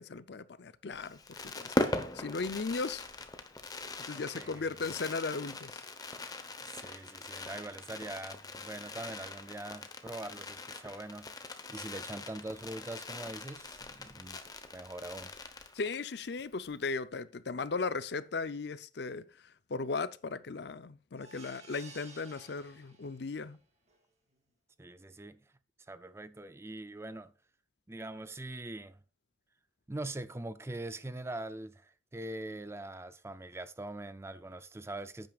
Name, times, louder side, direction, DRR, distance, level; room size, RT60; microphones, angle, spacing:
voice 1, 0.0-1.7 2.1-3.1 4.1-5.8 15.7-23.6, left 4 dB, 55° left, 0.5 m, -37 dB
Fireworks, 0.9-16.1 16.4-16.5 16.7-17.0, left 2 dB, 20° left, 0.9 m, -40 dB
voice 2, 4.1-5.0 6.7-11.3 11.7-14.4 14.7-15.3 24.8-25.5 25.8-27.3 27.9-29.0 29.9-35.3, right 2 dB, 15° right, 0.4 m, -43 dB
sound 1, 21.2-23.4 23.9-24.0 24.3-24.4, right 4 dB, 35° right, 2.2 m, -54 dB
11.0 x 9.0 x 2.4 m
head